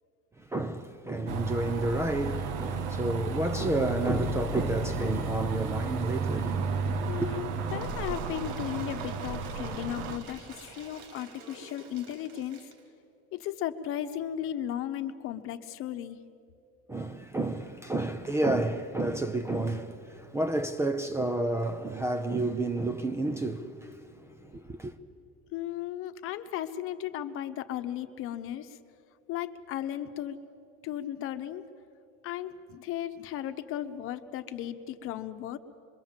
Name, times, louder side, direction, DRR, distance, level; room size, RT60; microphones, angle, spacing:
voice 1, 0.4-7.3 16.9-25.0, right 2 dB, 10° right, 0.5 m, -30 dB
sound 1, 1.3-10.2, right 4 dB, 90° right, 1.8 m, -33 dB
voice 2, 7.1-12.6 13.3-16.2 25.5-28.8 29.3-30.4 30.8-31.6 32.2-35.6, left 11 dB, 45° left, 1.1 m, -36 dB
Cheering / Applause / Crowd, 7.6-12.9, right 4 dB, 65° right, 3.7 m, -49 dB
25.5 x 23.0 x 7.4 m
cardioid pair, 170°, 30 cm